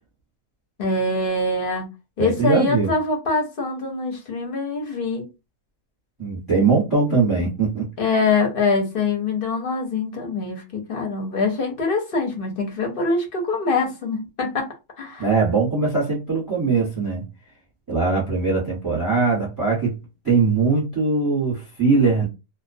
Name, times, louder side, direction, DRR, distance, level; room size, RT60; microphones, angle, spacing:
voice 1, 0.8-1.9 2.2-5.3 8.0-14.7 15.0-15.3, left 3 dB, 50° left, 0.7 m, -24 dB
voice 2, 2.2-2.9 6.2-7.9 15.2-17.2 17.9-19.9 20.2-22.3, right 4 dB, 15° right, 0.8 m, -21 dB
2.3 x 2.2 x 2.5 m
omnidirectional pair, 1.5 m